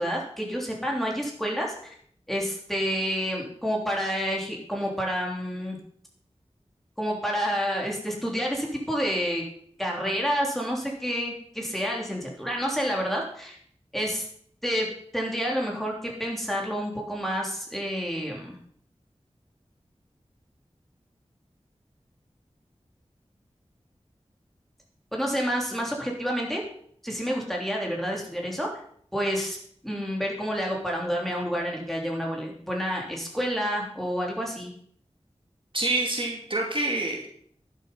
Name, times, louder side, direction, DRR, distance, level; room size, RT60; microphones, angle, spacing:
voice 1, 0.0-2.0 2.3-5.8 7.0-9.4 9.8-13.6 13.9-14.2 14.6-14.9 15.1-18.6 25.1-26.6 27.0-28.7 29.1-29.6 29.8-34.7, equal, ahead, -1 dB, 3.2 m, -29 dB
voice 2, 35.7-37.3, right 2 dB, 50° right, 0 dB, 2.5 m, -27 dB
11.0 x 7.6 x 5.4 m, 0.62 s
wide cardioid pair, 55°, 11 cm